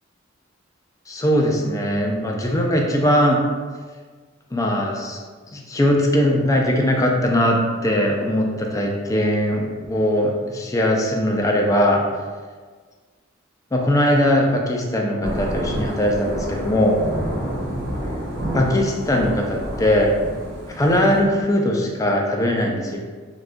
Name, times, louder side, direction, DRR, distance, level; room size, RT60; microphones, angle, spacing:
voice 1, 1.1-3.4 4.5-5.2 5.5-12.0 13.7-17.0 18.5-20.1 20.7-23.0, left 1 dB, 15° left, 1 dB, 0.3 m, -20 dB
Thunder / Rain, 15.2-21.2, right 1 dB, 60° right, 0.7 m, -29 dB
2.5 x 2.3 x 3.6 m, 1.5 s
head